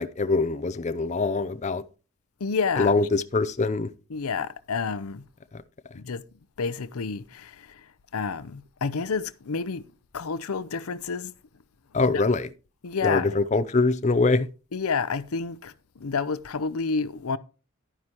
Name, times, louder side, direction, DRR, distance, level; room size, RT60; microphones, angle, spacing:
voice 1, 0.0-1.8 2.8-3.9 5.5-5.6 11.9-12.5 13.0-14.5, left 3 dB, 30° left, 0.5 m, -23 dB
voice 2, 2.4-2.9 4.1-5.2 5.9-6.2 6.6-9.9 10.1-11.3 11.9-12.2 12.8-13.4 14.7-17.4, left 5 dB, 80° left, 0.6 m, -29 dB
11.5 x 9.6 x 2.9 m
head